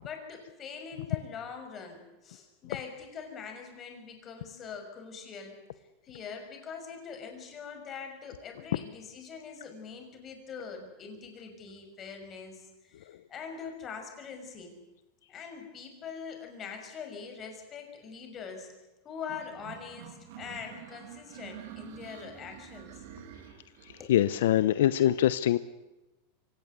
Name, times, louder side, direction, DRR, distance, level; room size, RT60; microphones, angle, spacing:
voice 1, 0.0-5.6 6.0-14.7 15.3-18.7 19.0-23.0 24.0-24.2, left 6 dB, 30° left, 5 dB, 6.0 m, -43 dB
sound 1, 19.3-24.1, right 10 dB, 70° right, 2.9 m, -48 dB
voice 2, 24.1-25.6, left 12 dB, 80° left, 15 dB, 0.8 m, -23 dB
24.0 x 18.0 x 8.2 m, 1.0 s
supercardioid pair, 135°, 0 cm